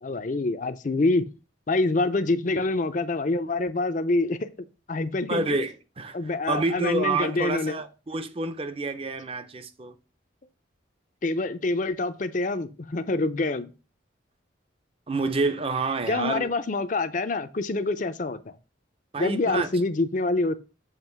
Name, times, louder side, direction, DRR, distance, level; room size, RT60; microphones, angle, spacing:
voice 1, 0.0-1.3 1.7-4.5 4.9-5.6 6.1-7.8 11.2-13.7 16.1-18.5 19.2-20.5, left 2 dB, 40° left, 0.5 m, -26 dB
voice 2, 5.3-10.0 15.1-16.5 19.1-19.7, right 3 dB, 30° right, 0.6 m, -28 dB
7.4 x 3.0 x 5.9 m
head